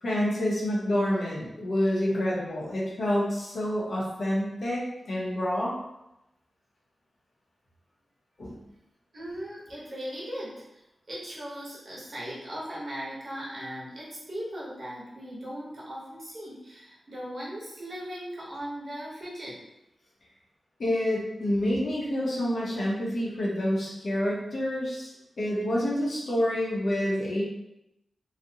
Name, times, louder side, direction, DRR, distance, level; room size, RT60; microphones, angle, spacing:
voice 1, 0.0-5.7 8.4-8.6 20.8-27.4, left 1 dB, 55° left, -5 dB, 0.6 m, -28 dB
voice 2, 9.1-19.6, equal, 40° right, -7 dB, 0.8 m, -38 dB
2.4 x 2.0 x 2.7 m, 0.88 s
wide cardioid pair, 175°, 0 cm